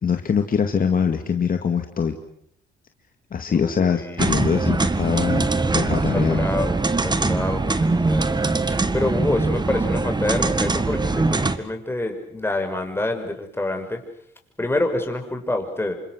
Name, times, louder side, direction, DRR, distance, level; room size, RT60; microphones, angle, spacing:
voice 1, 0.0-2.2 3.3-5.5 5.7-6.4, left 6 dB, 45° left, 6 dB, 2.3 m, -23 dB
voice 2, 3.5-4.4 6.1-8.4 8.6-14.0 14.6-15.9, left 2 dB, 10° left, 4 dB, 6.2 m, -27 dB
sound 1, 4.2-11.6, right 3 dB, 20° right, 1.8 m, -22 dB
29.0 x 25.5 x 6.3 m, 0.68 s
cardioid pair, 90°, 20 cm